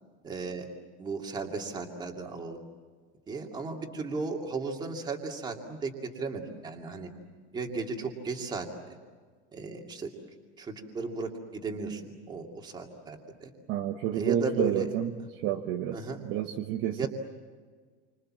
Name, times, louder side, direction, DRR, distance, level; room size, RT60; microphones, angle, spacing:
voice 1, 0.2-0.7 1.0-2.6 3.3-7.1 7.5-8.7 9.5-10.1 10.6-13.5 14.1-14.9 15.9-16.2 17.0-17.1, right 4 dB, 10° right, 1 dB, 2.4 m, -35 dB
voice 2, 13.7-15.1 15.4-16.0 16.2-17.1, right 10 dB, 35° right, 3 dB, 1.1 m, -29 dB
29.0 x 25.5 x 7.5 m, 1.6 s
supercardioid pair, 180°, 34 cm